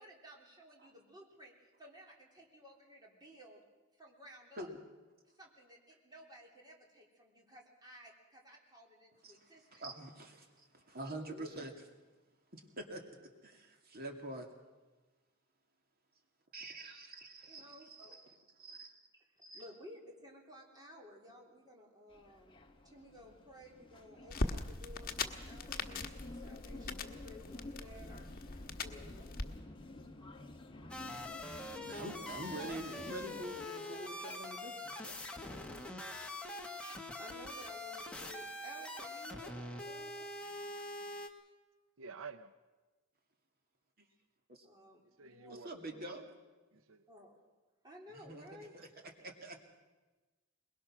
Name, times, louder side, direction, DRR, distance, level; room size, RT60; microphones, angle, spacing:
voice 1, 0.0-1.5 1.8-3.6 4.0-4.7 5.3-9.8 10.6-10.7 17.3-18.2 19.1-28.3 28.8-29.5 36.9-40.3 44.6-45.7 47.1-47.4 47.8-48.8, equal, 20° right, -1 dB, 3.5 m, -56 dB
voice 2, 9.7-11.9 12.5-14.5 16.5-18.3 18.6-18.9 31.8-35.2 35.6-36.0 44.5-44.7 45.5-46.3 48.1-48.9 49.2-49.6, right 1 dB, 50° right, 3 dB, 2.4 m, -46 dB
sound 1, 22.1-33.7, left 2 dB, 25° left, 1.4 m, -52 dB
sound 2, 24.3-29.5, left 3 dB, 45° left, 1.4 m, -41 dB
sound 3, 30.9-41.3, left 1 dB, 5° left, 1.6 m, -44 dB
voice 3, 42.0-42.5 45.2-46.2 46.7-47.0 48.5-48.6, right 5 dB, 90° right, 12 dB, 0.7 m, -50 dB
22.5 x 21.0 x 6.1 m, 1.2 s
head